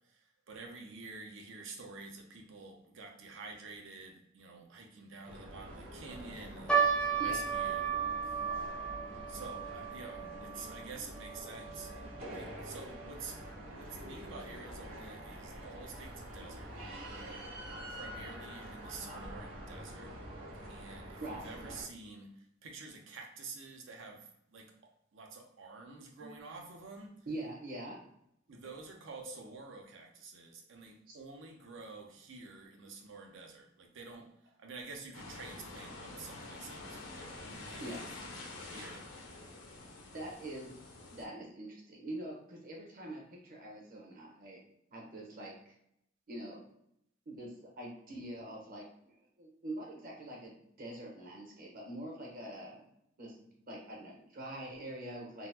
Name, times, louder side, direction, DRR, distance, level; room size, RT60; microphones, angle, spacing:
voice 1, 0.1-7.9 8.2-8.7 9.3-11.9 12.3-13.4 13.7-20.2 20.7-24.7 25.1-27.2 28.5-34.3 34.6-38.1 38.7-39.1, right 4 dB, 65° right, 2 dB, 0.6 m, -49 dB
sound 1, 5.2-21.8, right 1 dB, 85° right, 1.3 m, -46 dB
sound 2, 6.7-13.2 13.4-13.5 14.3-14.6 15.2-15.3 15.6-15.8, right 6 dB, 5° left, 0.4 m, -35 dB
voice 2, 27.3-28.0 31.1-31.2 37.8-38.0 40.1-40.7 41.1-44.6 44.9-45.7 46.3-46.6 47.3-52.8 53.2-55.5, right 1 dB, 45° right, -2 dB, 0.9 m, -44 dB
sound 3, 35.1-41.2, left 2 dB, 70° left, 0.6 m, -47 dB
3.7 x 2.0 x 2.8 m, 0.76 s
head